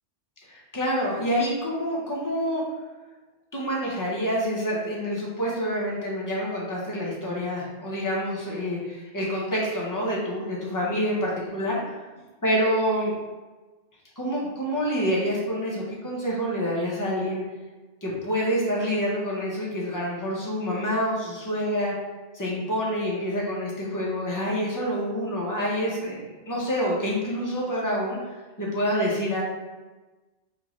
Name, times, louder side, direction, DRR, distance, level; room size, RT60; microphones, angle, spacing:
voice 1, 0.5-2.6 3.5-11.9 12.4-13.1 14.2-17.4 18.0-21.9 22.3-28.2 28.6-29.4, equal, 20° left, -4 dB, 0.6 m, -27 dB
3.8 x 2.3 x 3.0 m, 1.2 s
omnidirectional pair, 1.1 m